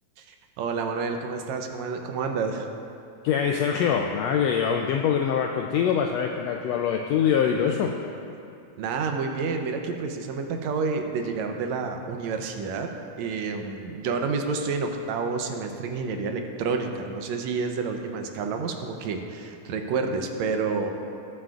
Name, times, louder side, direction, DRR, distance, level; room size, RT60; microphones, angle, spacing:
voice 1, 0.2-2.7 8.8-12.9 13.2-20.9, right 4 dB, 75° right, 4 dB, 1.8 m, -29 dB
voice 2, 3.2-7.9, left 7 dB, 90° left, 2 dB, 1.4 m, -24 dB
21.0 x 7.6 x 2.4 m, 2.6 s
omnidirectional pair, 3.5 m